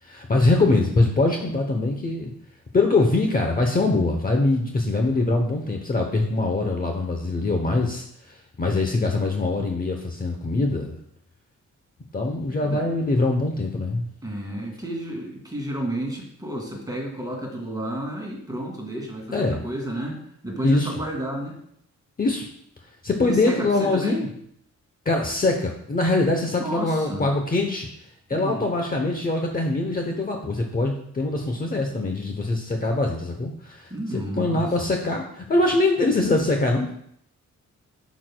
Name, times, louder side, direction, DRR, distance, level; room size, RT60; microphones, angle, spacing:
voice 1, 0.0-2.3 2.7-11.0 12.1-14.1 19.3-19.6 20.6-20.9 22.2-22.5 23.0-24.3 25.1-27.9 28.3-37.0, left 2 dB, 30° left, 3 dB, 0.8 m, -23 dB
voice 2, 14.2-21.6 23.2-24.3 26.4-27.3 28.3-28.6 33.9-34.7, right 1 dB, 10° right, -1 dB, 2.1 m, -31 dB
11.0 x 6.1 x 2.2 m, 0.69 s
wide cardioid pair, 145°, 31 cm